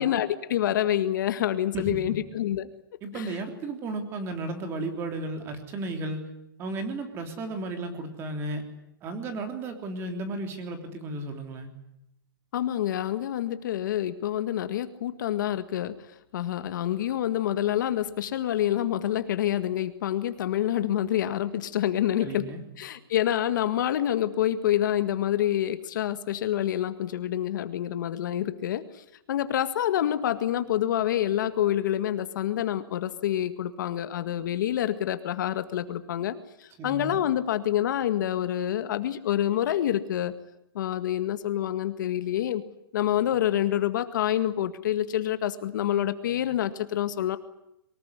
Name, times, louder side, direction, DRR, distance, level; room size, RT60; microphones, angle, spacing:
voice 1, 0.0-2.7 3.1-3.2 12.5-16.0 16.3-22.5 22.8-29.0 29.3-36.4 36.6-40.3 40.8-42.6 42.9-47.4, left 11 dB, 55° left, 10 dB, 1.9 m, -27 dB
voice 2, 1.7-2.2 3.0-6.3 6.6-8.6 9.0-11.7 22.2-22.6 36.8-37.2, right 2 dB, 20° right, 6 dB, 3.4 m, -34 dB
23.5 x 20.0 x 9.8 m, 0.81 s
hypercardioid pair, 165°, 12 cm